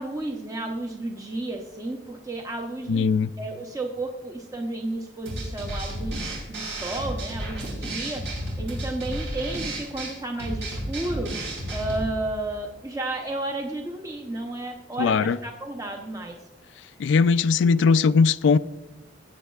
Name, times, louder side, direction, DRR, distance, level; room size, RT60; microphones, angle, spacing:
voice 1, 0.0-8.2 8.6-11.3 11.7-16.4, right 2 dB, 20° right, 0.6 m, -32 dB
voice 2, 2.9-3.3 15.0-15.4 17.0-18.6, left 5 dB, 75° left, 0.3 m, -19 dB
sound 1, 5.3-12.1, right 1 dB, 70° right, 2.8 m, -32 dB
16.0 x 8.2 x 2.3 m
head